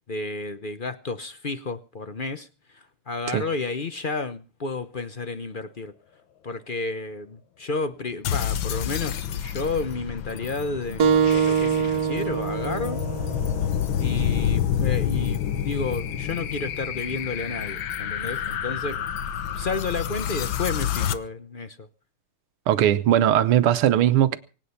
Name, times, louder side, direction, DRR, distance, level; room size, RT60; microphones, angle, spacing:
voice 1, 0.1-5.9 6.4-13.0 14.0-19.0 19.5-21.9, left 3 dB, 50° left, 0.6 m, -31 dB
sound 1, 8.3-21.2, left 9 dB, 65° left, 1.7 m, -28 dB
sound 2, 11.0-16.1, right 7 dB, 50° right, 1.9 m, -26 dB
voice 2, 22.7-24.4, right 11 dB, 85° right, 1.8 m, -19 dB
24.5 x 9.1 x 5.7 m
omnidirectional pair, 2.3 m